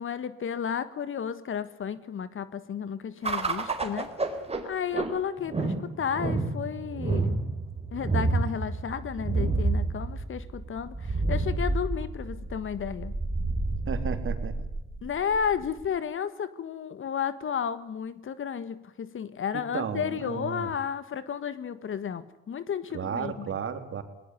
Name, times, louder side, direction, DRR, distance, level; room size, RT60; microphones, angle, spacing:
voice 1, 0.0-4.1 4.6-7.4 7.9-13.1 15.0-23.6, left 7 dB, 45° left, 14 dB, 1.7 m, -32 dB
sound 1, 3.2-15.9, right 3 dB, 20° right, 4.5 m, -30 dB
voice 2, 13.9-14.5 19.5-20.7 22.9-24.0, right 7 dB, 45° right, 8 dB, 3.7 m, -33 dB
20.5 x 20.0 x 9.8 m, 0.86 s
hypercardioid pair, 65°, 29 cm